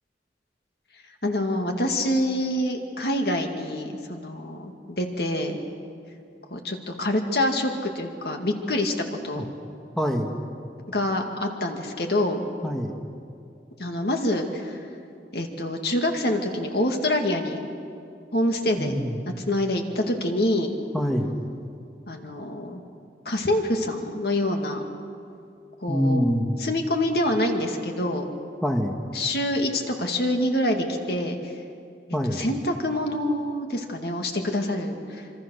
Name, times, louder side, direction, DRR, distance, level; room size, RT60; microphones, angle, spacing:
voice 1, 1.2-5.6 6.5-8.9 9.2-9.5 10.9-12.4 13.8-14.8 15.3-17.6 18.3-18.9 19.5-20.7 22.1-22.8 23.3-24.8 25.8-26.2 26.6-28.2 29.1-31.5 32.3-35.4, left 1 dB, 60° left, 3 dB, 2.3 m, -26 dB
voice 2, 10.0-10.4 12.6-12.9 18.8-19.2 20.9-21.4 25.9-26.6 28.6-29.0 32.1-32.4, equal, 5° left, 2 dB, 1.4 m, -25 dB
26.5 x 25.0 x 6.6 m, 2.5 s
head